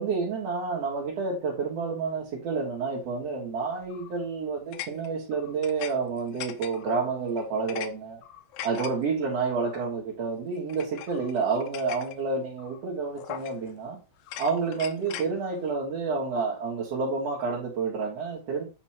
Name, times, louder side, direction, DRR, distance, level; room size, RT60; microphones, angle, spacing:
voice 1, 0.0-8.2 8.6-14.0 14.4-18.6, right 4 dB, 55° right, 2.7 m, -29 dB
sound 1, 3.8-4.2 4.7-5.9 6.2-7.0 7.4-7.9 8.2-8.9 9.6-9.8 10.7-12.2 12.6-12.8 13.2-13.8 14.2-15.3, left 11 dB, 75° left, 2.0 m, -40 dB
9.1 x 3.1 x 4.3 m
omnidirectional pair, 3.6 m